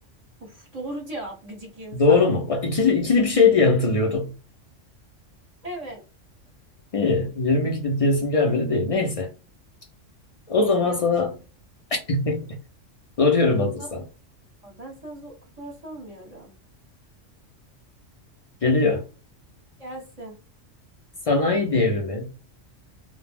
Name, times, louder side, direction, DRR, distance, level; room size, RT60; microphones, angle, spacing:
voice 1, 0.4-2.2 5.6-6.0 10.6-11.1 13.8-13.9 14.6-16.5 19.8-20.3, right 1 dB, 35° right, 1.0 m, -38 dB
voice 2, 1.9-4.3 6.9-9.3 10.5-11.3 12.1-12.6 13.2-14.0 18.6-19.0 21.3-22.3, left 3 dB, 55° left, 0.4 m, -21 dB
2.3 x 2.0 x 3.3 m
omnidirectional pair, 1.3 m